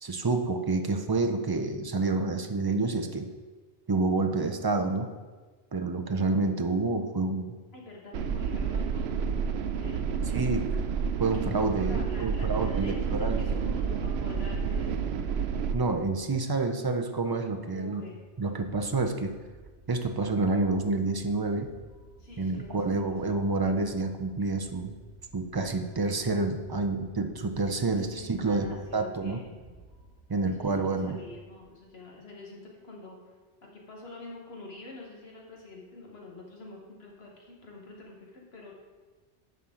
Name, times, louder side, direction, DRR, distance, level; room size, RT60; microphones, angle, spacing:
voice 1, 0.0-3.3 3.9-5.1 5.7-7.5 10.3-10.7 11.2-13.4 15.7-18.0 18.4-19.3 19.9-21.7 22.4-24.9 25.3-29.4 30.3-31.2, right 3 dB, 35° right, 5 dB, 0.4 m, -28 dB
voice 2, 7.7-10.6 11.3-15.1 17.7-18.2 22.2-22.8 23.0-23.1 27.9-29.8 30.4-33.2 33.6-38.7, left 2 dB, 65° left, -1 dB, 1.7 m, -46 dB
sound 1, 8.1-15.7, right 6 dB, 70° right, 0.8 m, -29 dB
sound 2, 18.2-32.2, right 2 dB, 10° left, 2.7 m, -55 dB
10.5 x 5.6 x 3.8 m, 1.4 s
omnidirectional pair, 1.2 m